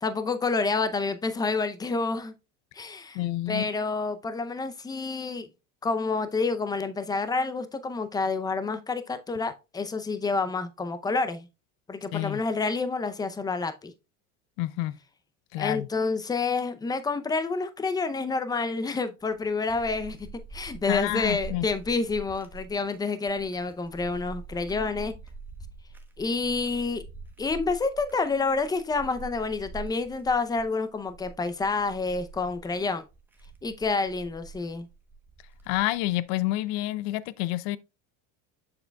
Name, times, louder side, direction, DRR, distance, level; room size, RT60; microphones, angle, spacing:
voice 1, 0.0-2.3 2.8-3.2 3.5-5.5 5.8-11.5 11.9-13.9 15.6-20.2 20.5-25.1 26.2-27.0 27.4-33.0 33.6-34.9, left 4 dB, 10° left, 0.5 m, -28 dB
voice 2, 3.1-3.7 12.1-12.4 14.6-15.0 15.5-15.9 20.9-21.7 35.7-37.8, left 17 dB, 70° left, 0.6 m, -28 dB
sound 1, 19.2-36.1, right 4 dB, 5° right, 0.9 m, -45 dB
7.0 x 6.5 x 2.3 m
supercardioid pair, 130°, 37 cm